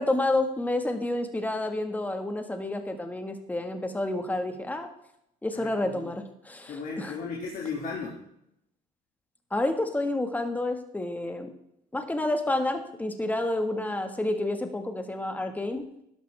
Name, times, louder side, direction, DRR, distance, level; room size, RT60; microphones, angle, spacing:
voice 1, 0.0-4.9 5.4-7.2 9.5-11.5 11.9-15.8, left 2 dB, 10° left, 6 dB, 1.6 m, -29 dB
voice 2, 5.5-6.1 6.7-8.2, left 4 dB, 55° left, -2 dB, 2.3 m, -35 dB
13.0 x 11.0 x 3.4 m, 0.77 s
cardioid pair, 110°, 17 cm